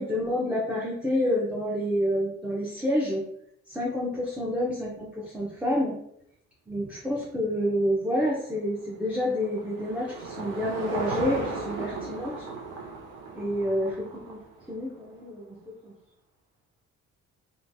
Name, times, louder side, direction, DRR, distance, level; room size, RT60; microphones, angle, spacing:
voice 1, 0.0-3.2 3.7-5.9 6.7-12.5 13.3-14.4 14.7-15.5 15.8-15.9, equal, 5° right, -5 dB, 0.6 m, -28 dB
Car passing by / Engine, 8.5-15.0, right 3 dB, 90° right, 0.6 m, -36 dB
2.9 x 2.2 x 2.6 m, 0.74 s
cardioid pair, 90°, 30 cm